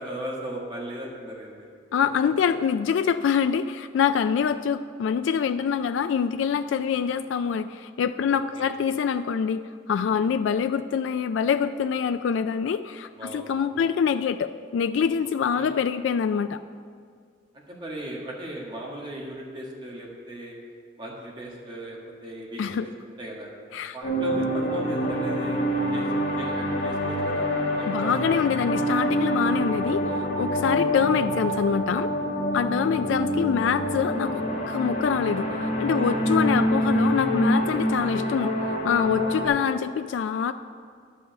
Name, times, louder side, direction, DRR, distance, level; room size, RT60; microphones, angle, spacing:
voice 1, 0.0-1.7 8.3-8.7 10.0-10.2 13.1-13.9 15.5-15.7 17.7-20.6 21.0-23.5 23.9-26.1 26.4-28.4 29.9-30.2 32.5-32.9 35.9-36.2 39.4-39.5, right 1 dB, 25° right, -2 dB, 1.5 m, -37 dB
voice 2, 1.9-16.6 22.6-22.9 23.7-24.0 27.9-32.1 32.5-40.5, left 7 dB, 90° left, 10 dB, 0.3 m, -25 dB
sound 1, 24.0-39.5, equal, 50° left, 2.6 m, -26 dB
11.0 x 5.6 x 7.4 m, 2.1 s
head